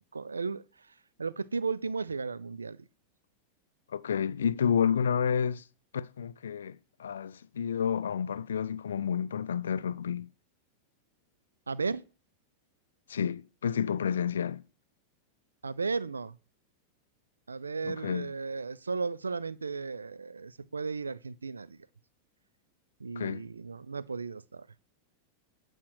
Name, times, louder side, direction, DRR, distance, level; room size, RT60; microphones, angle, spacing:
voice 1, 0.1-0.6 1.2-2.8 11.7-12.0 15.6-16.4 17.5-21.8 23.0-24.7, right 4 dB, 75° right, 0.4 m, -35 dB
voice 2, 3.9-5.6 5.9-10.3 13.1-14.6 17.8-18.3 23.2-23.5, left 7 dB, 65° left, 0.3 m, -30 dB
8.5 x 4.4 x 6.4 m
figure-of-eight pair, 90°, 0 cm